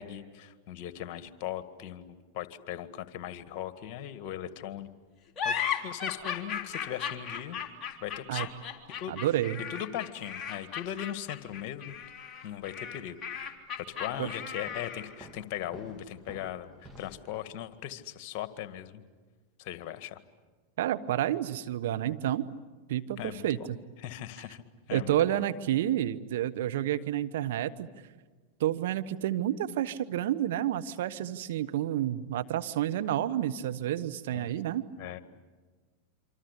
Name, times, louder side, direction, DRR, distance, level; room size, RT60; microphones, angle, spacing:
voice 1, 0.0-4.9 5.4-5.6 5.8-7.6 8.0-8.5 9.0-9.1 9.7-12.0 12.4-13.2 13.9-19.0 19.6-20.2 23.2-23.5 24.0-25.4 34.3-34.5 35.0-35.2, left 11 dB, 50° left, 11 dB, 1.8 m, -39 dB
sound 1, 5.4-15.2, left 8 dB, 25° left, 3.7 m, -36 dB
voice 2, 9.1-9.6 14.2-14.3 20.8-22.5 22.9-23.8 24.9-27.9 28.6-34.8, right 12 dB, 70° right, 11 dB, 1.1 m, -30 dB
Walk footsteps, 14.1-17.4, equal, 10° right, 2.6 m, -52 dB
27.0 x 25.5 x 8.4 m, 1.4 s
hypercardioid pair, 100°, 0 cm